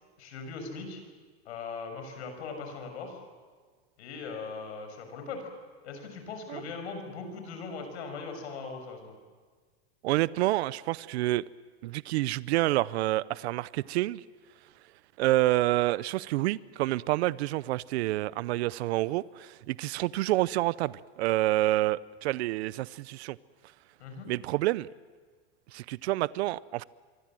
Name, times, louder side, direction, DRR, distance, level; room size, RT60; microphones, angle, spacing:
voice 1, 0.2-1.0 1.4-3.2 4.0-5.5 5.8-9.1 24.0-24.3, left 4 dB, 85° left, 5 dB, 6.9 m, -40 dB
voice 2, 10.0-11.4 11.8-14.2 15.2-23.4 24.3-24.9 25.7-26.8, right 17 dB, 80° right, 19 dB, 0.7 m, -28 dB
26.0 x 24.0 x 7.6 m, 1.5 s
supercardioid pair, 145°, 32 cm